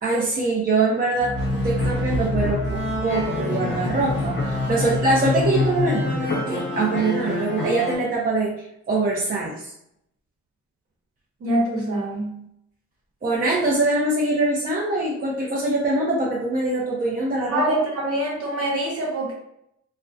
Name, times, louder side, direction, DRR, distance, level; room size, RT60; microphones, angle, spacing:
voice 1, 0.0-8.5 8.9-9.7 13.2-17.8, right 2 dB, 30° right, -4 dB, 0.6 m, -23 dB
sound 1, 1.2-7.9, left 2 dB, 40° left, 0.7 m, -25 dB
voice 2, 11.4-12.4 17.4-19.3, right 1 dB, 50° right, -2 dB, 1.0 m, -24 dB
2.5 x 2.1 x 2.4 m, 0.77 s
cardioid pair, 90°, 30 cm